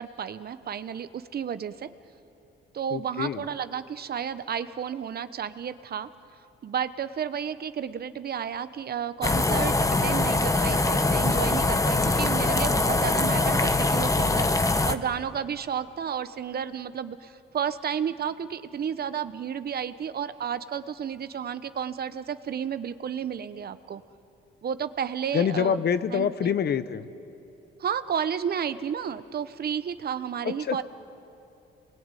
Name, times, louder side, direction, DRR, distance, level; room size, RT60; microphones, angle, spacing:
voice 1, 0.0-1.9 2.7-6.1 6.6-14.5 14.8-24.0 24.6-25.8 26.1-26.5 27.8-30.8, right 8 dB, 50° right, 12 dB, 1.0 m, -32 dB
voice 2, 2.9-3.4 25.3-27.1 30.4-30.8, left 7 dB, 55° left, 12 dB, 1.1 m, -26 dB
sound 1, 9.2-14.9, left 2 dB, 15° left, 1.1 m, -23 dB
29.0 x 21.5 x 9.2 m, 2.9 s
cardioid pair, 90°, 20 cm